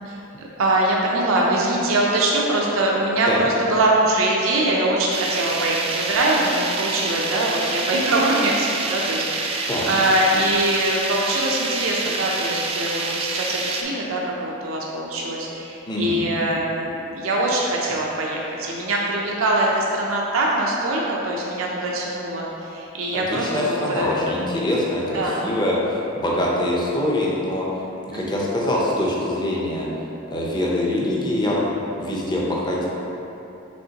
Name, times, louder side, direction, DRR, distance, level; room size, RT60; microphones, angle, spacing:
voice 1, 0.0-24.2 25.1-25.4 28.1-28.5, right 1 dB, 80° right, -3 dB, 0.5 m, -23 dB
sound 1, 5.1-13.8, right 3 dB, 30° right, 0.3 m, -27 dB
voice 2, 15.9-16.3 23.1-29.9 30.3-32.9, left 1 dB, 20° left, -4 dB, 0.6 m, -24 dB
5.3 x 3.5 x 2.8 m, 2.9 s
head